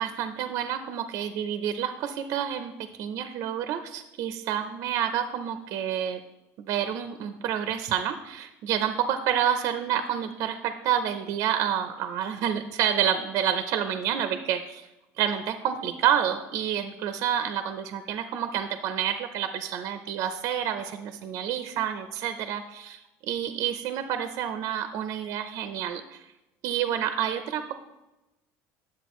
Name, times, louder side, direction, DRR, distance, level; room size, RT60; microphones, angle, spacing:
voice 1, 0.0-2.7 3.0-6.2 6.6-14.9 15.2-23.0 23.3-26.2 26.6-27.7, right 9 dB, 55° right, 8 dB, 0.6 m, -28 dB
10.5 x 7.5 x 3.1 m, 0.99 s
cardioid pair, 145°, 7 cm